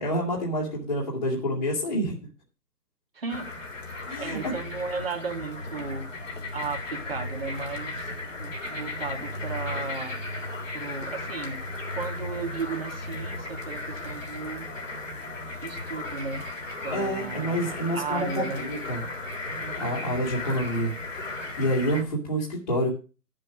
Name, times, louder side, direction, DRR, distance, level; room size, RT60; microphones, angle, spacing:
voice 1, 0.0-2.2 4.1-4.5 16.9-19.0 19.8-20.9 21.3-22.9, equal, 30° left, -5 dB, 2.7 m, -28 dB
voice 2, 3.1-3.5 3.9-6.1 6.5-8.1 8.4-10.2 10.7-11.6 11.9-14.7 15.6-16.5 16.8-18.7 19.6-19.9, right 4 dB, 35° right, 2 dB, 2.4 m, -35 dB
sound 1, 3.3-22.0, left 2 dB, 50° left, 3.3 m, -35 dB
11.0 x 7.6 x 6.1 m, 0.34 s
hypercardioid pair, 180°, 48 cm